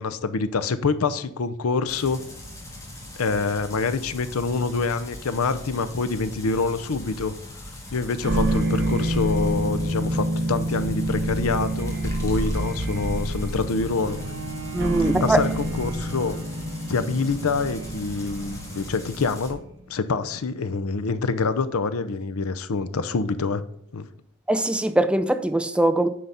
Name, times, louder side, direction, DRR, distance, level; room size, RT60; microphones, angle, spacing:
voice 1, 0.0-2.2 3.2-7.3 7.9-14.2 15.0-16.4 16.9-19.6 19.9-23.6 23.9-24.0, left 4 dB, 85° left, 0.6 m, -26 dB
sound 1, 1.9-19.5, left 1 dB, 15° left, 1.6 m, -41 dB
sound 2, 8.2-19.6, right 1 dB, 55° right, 1.1 m, -27 dB
Bowed string instrument, 14.0-19.7 20.3-20.4, right 1 dB, 80° right, 1.5 m, -40 dB
voice 2, 14.7-15.4 24.5-26.1, right 1 dB, 5° right, 0.3 m, -21 dB
9.4 x 4.0 x 5.6 m
head